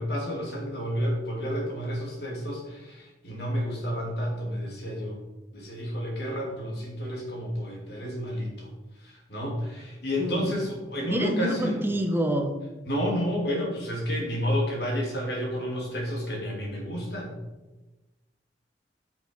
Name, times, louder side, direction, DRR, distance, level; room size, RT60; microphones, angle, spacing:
voice 1, 0.0-5.2 5.5-8.7 9.0-11.8 12.8-17.4, equal, 65° left, -1 dB, 2.9 m, -30 dB
voice 2, 10.2-10.5 11.1-12.5, equal, 15° right, 4 dB, 1.1 m, -27 dB
9.1 x 7.8 x 4.7 m, 1.1 s
head